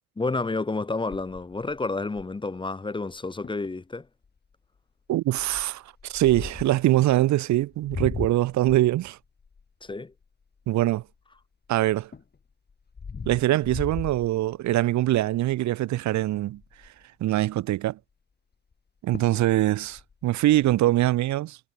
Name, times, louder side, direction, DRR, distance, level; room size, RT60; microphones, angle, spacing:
voice 1, 0.2-4.1 9.8-10.1, left 3 dB, 15° left, 0.8 m, -30 dB
sound 1, 1.1-2.6 3.1-3.2 3.4-3.7 4.2-4.5 5.4-6.8 7.5-11.4 11.9-14.9 15.4-15.7 15.9-16.0 16.3-17.0 18.7-18.8 19.1-19.5 19.8-20.8, left 5 dB, 35° left, 2.5 m, -39 dB
voice 2, 5.1-9.2 10.7-11.0 11.7-12.1 13.3-16.6 17.2-18.0 19.0-21.6, right 15 dB, 70° right, 0.6 m, -23 dB
cardioid pair, 90°, 30 cm